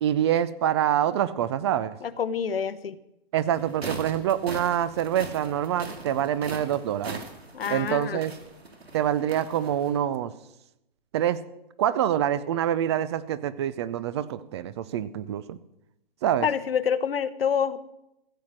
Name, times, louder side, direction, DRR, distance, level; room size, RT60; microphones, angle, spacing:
voice 1, 0.0-2.0 3.3-7.2 7.7-8.3 8.9-10.3 11.1-11.4 11.8-15.6 16.2-16.5, right 10 dB, 30° right, 16 dB, 0.5 m, -26 dB
voice 2, 2.0-3.0 7.5-8.2 16.4-17.8, left 7 dB, 70° left, 15 dB, 1.0 m, -27 dB
sound 1, 3.5-10.0, right 3 dB, 85° right, 2.3 m, -41 dB
15.0 x 7.2 x 7.5 m, 0.87 s
figure-of-eight pair, 125°, 30 cm